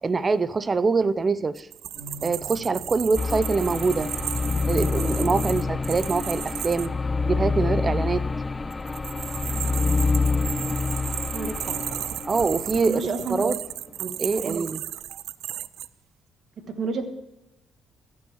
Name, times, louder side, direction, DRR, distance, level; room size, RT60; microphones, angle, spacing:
voice 1, 0.0-1.7 2.2-4.1 4.7-7.0 7.2-8.3 12.3-13.0 13.3-13.5 14.2-14.8 15.1-15.2, right 4 dB, 30° right, 17 dB, 0.6 m, -24 dB
sound 1, 1.6-6.9 8.7-15.9, right 13 dB, 85° right, 0.3 m, -34 dB
sound 2, 1.9-14.7, left 1 dB, 10° right, 5.5 m, -48 dB
sound 3, 3.2-12.8, left 4 dB, 25° left, 0.3 m, -27 dB
voice 2, 11.3-11.8 12.9-13.6 14.0-14.2 14.4-14.7 16.7-17.1, right 4 dB, 60° right, 7 dB, 1.4 m, -30 dB
15.5 x 6.3 x 7.2 m, 0.98 s
cardioid pair, 90°, 0 cm